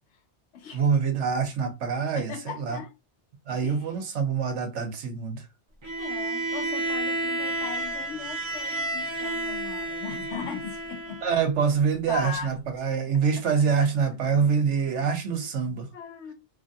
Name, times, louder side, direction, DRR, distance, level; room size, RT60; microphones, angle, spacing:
voice 1, 0.7-2.8 3.5-5.5 11.2-15.9, right 6 dB, 85° right, 1.0 m, -25 dB
voice 2, 2.1-2.9 3.6-3.8 6.0-11.2 12.1-12.5 13.1-13.2 15.9-16.3, left 7 dB, 80° left, 1.0 m, -38 dB
Bowed string instrument, 5.8-11.4, right 2 dB, 35° right, 0.5 m, -31 dB
2.9 x 2.6 x 2.5 m
omnidirectional pair, 1.2 m